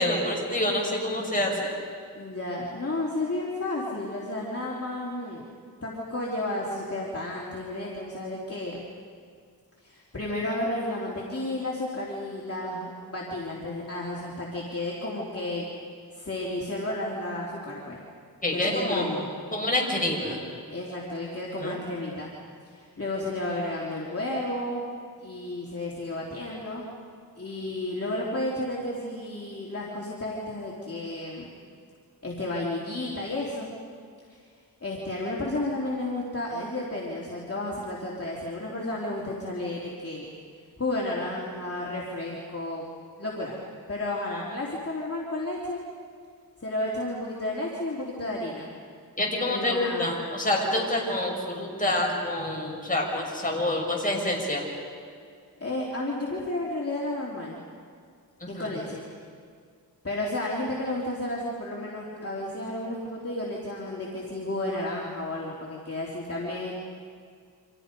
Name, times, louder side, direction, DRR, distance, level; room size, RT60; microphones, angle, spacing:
voice 1, 0.0-1.7 18.4-19.1 19.5-20.4 21.6-21.8 49.2-54.7 58.5-58.6, left 1 dB, 20° left, -1 dB, 6.2 m, -27 dB
voice 2, 2.1-5.4 5.8-8.8 9.8-15.7 16.1-18.0 18.5-19.3 20.7-22.3 22.6-24.9 25.2-26.8 27.4-31.5 32.2-33.7 34.3-34.4 34.8-40.3 40.8-42.8 43.2-43.6 43.9-45.8 46.6-48.7 49.4-50.1 55.6-57.6 58.5-59.1 60.0-66.7, left 1 dB, 40° left, -4 dB, 3.2 m, -32 dB
30.0 x 26.5 x 5.3 m, 2.1 s
wide cardioid pair, 65°, 38 cm